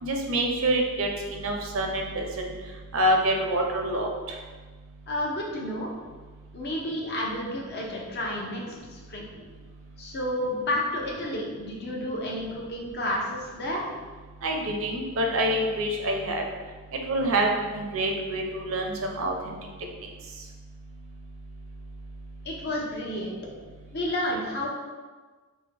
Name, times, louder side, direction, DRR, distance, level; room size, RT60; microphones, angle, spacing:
voice 1, 0.0-2.3 2.9-4.1 14.4-16.4 17.1-19.5, right 1 dB, 65° right, 2 dB, 0.6 m, -26 dB
voice 2, 5.1-5.9 6.5-9.3 10.0-13.8 22.4-23.4 23.9-24.7, left 1 dB, 50° left, -2 dB, 0.8 m, -31 dB
3.6 x 3.1 x 3.4 m, 1.4 s
head